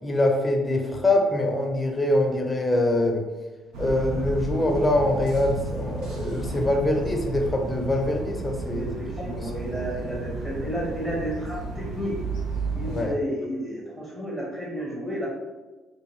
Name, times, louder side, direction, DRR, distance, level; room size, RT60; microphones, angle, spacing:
voice 1, 0.0-3.2 3.8-8.9 9.3-9.5 12.9-13.2, left 1 dB, 20° left, 2 dB, 0.6 m, -24 dB
sound 1, 3.7-13.0, right 3 dB, 80° right, 0.7 m, -32 dB
voice 2, 8.6-12.1 12.7-15.3, equal, 30° right, -6 dB, 1.2 m, -32 dB
3.6 x 2.3 x 3.1 m, 1.2 s
supercardioid pair, 75°, 0 cm